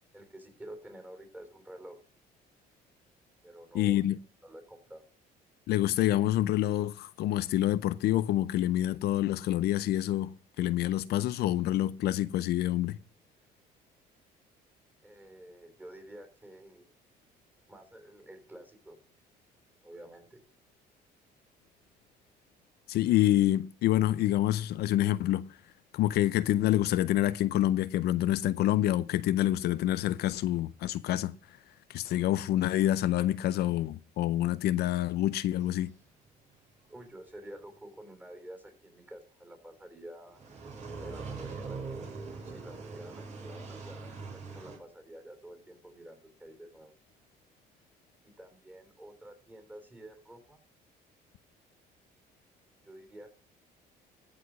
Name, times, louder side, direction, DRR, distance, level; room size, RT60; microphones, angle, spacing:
voice 1, 0.1-2.0 3.4-4.0 4.4-5.0 15.0-16.9 17.7-19.0 19.8-20.4 36.9-40.4 40.9-46.9 48.2-50.6 52.8-53.3, right 1 dB, 10° right, 3.6 m, -49 dB
voice 2, 3.7-4.2 5.7-13.0 22.9-25.5 25.9-31.4 31.9-35.9, left 13 dB, 70° left, 0.5 m, -27 dB
sound 1, 40.3-44.8, right 4 dB, 45° right, 3.4 m, -41 dB
14.5 x 4.9 x 6.1 m
cardioid pair, 110°, 17 cm